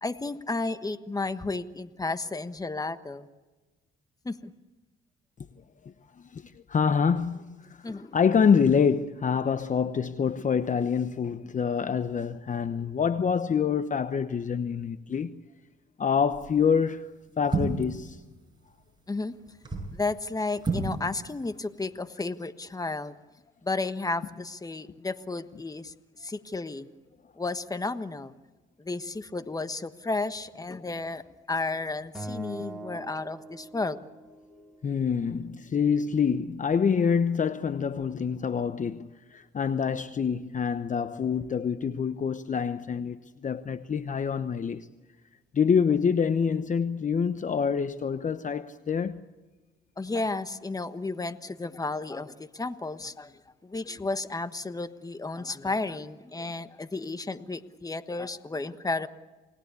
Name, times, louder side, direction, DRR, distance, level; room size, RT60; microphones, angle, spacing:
voice 1, 0.0-3.3 4.2-4.5 7.8-8.2 19.1-19.4 19.9-23.1 23.6-25.9 26.2-26.9 27.4-28.3 28.8-34.0 50.0-59.1, left 3 dB, 20° left, 1.4 m, -33 dB
voice 2, 6.3-7.8 8.1-15.4 16.0-17.1 17.4-18.2 34.8-44.9 45.5-49.2, left 6 dB, 40° left, 1.0 m, -26 dB
sound 1, 16.3-16.6 17.4-18.0 19.5-20.0 20.6-21.0 21.2-21.3, right 3 dB, 20° right, 7.7 m, -30 dB
Acoustic guitar, 32.1-34.5, right 1 dB, ahead, 4.9 m, -41 dB
28.5 x 19.5 x 8.3 m
cardioid pair, 90°, 20 cm